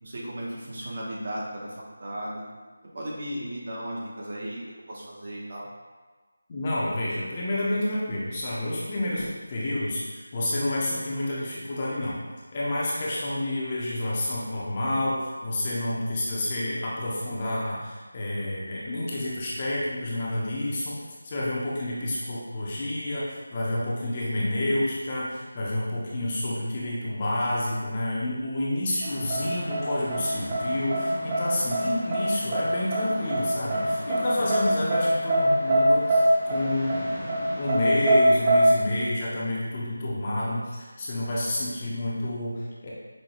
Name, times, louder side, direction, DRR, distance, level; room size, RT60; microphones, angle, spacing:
voice 1, 0.0-2.4 2.8-4.6 4.9-5.7 31.8-31.9, right 1 dB, 45° right, -5 dB, 1.0 m, -36 dB
voice 2, 6.5-12.2 12.5-21.0 21.2-37.2 37.6-42.9, left 1 dB, 25° left, -6 dB, 0.7 m, -29 dB
sound 1, 29.0-38.6, right 1 dB, 15° right, 0.6 m, -25 dB
5.4 x 2.2 x 2.9 m, 1.3 s
figure-of-eight pair, 170°, 0 cm